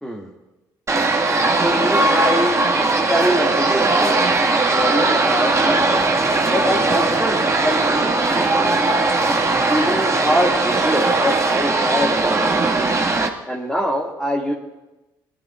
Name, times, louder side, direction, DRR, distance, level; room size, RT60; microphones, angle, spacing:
sound 1, 0.9-13.3, right 3 dB, 25° right, 2.1 m, -19 dB
voice 1, 1.6-4.2 4.6-6.0 6.5-9.2 9.7-12.9 13.5-14.5, equal, 5° left, -3 dB, 2.4 m, -24 dB
23.0 x 13.0 x 2.6 m, 1.0 s
hypercardioid pair, 50°, 11 cm